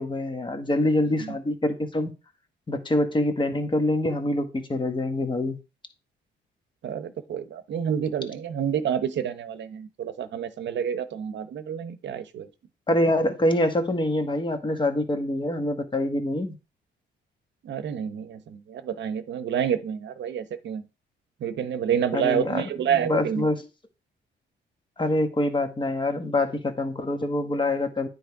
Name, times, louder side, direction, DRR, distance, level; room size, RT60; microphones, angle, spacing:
voice 1, 0.0-2.1 2.7-5.6 12.9-16.6 22.1-23.6 25.0-28.1, left 1 dB, 25° left, 1.2 m, -25 dB
voice 2, 6.8-12.5 17.6-20.8 21.4-23.4, right 8 dB, 65° right, 0.9 m, -28 dB
9.2 x 3.2 x 4.7 m
cardioid pair, 90°, 20 cm